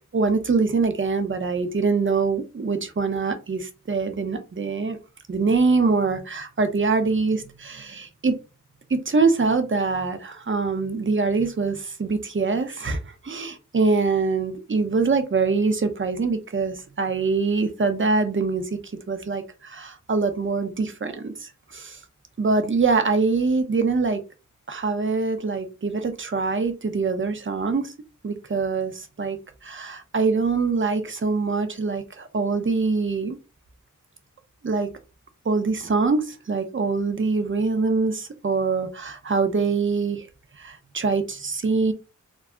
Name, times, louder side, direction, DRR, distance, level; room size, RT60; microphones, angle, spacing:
voice 1, 0.1-5.0 5.3-8.4 8.9-18.8 19.1-22.0 22.4-24.2 24.7-27.9 28.2-33.4 34.6-34.9 35.4-40.3 40.6-41.9, right 4 dB, 40° right, 8 dB, 0.6 m, -24 dB
2.2 x 2.1 x 3.6 m, 0.30 s
wide cardioid pair, 45°, 33 cm